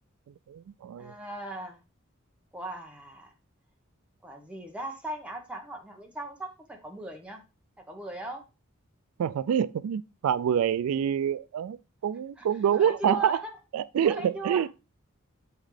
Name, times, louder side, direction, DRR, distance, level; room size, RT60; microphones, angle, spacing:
voice 1, 0.5-1.1 9.2-13.4 13.7-14.7, right 9 dB, 90° right, 0.3 m, -26 dB
voice 2, 1.0-1.8 2.5-3.3 4.2-7.4 7.9-8.4 12.4-12.5 12.7-13.5 14.0-14.7, right 1 dB, 5° right, 1.1 m, -38 dB
7.2 x 5.8 x 3.3 m
head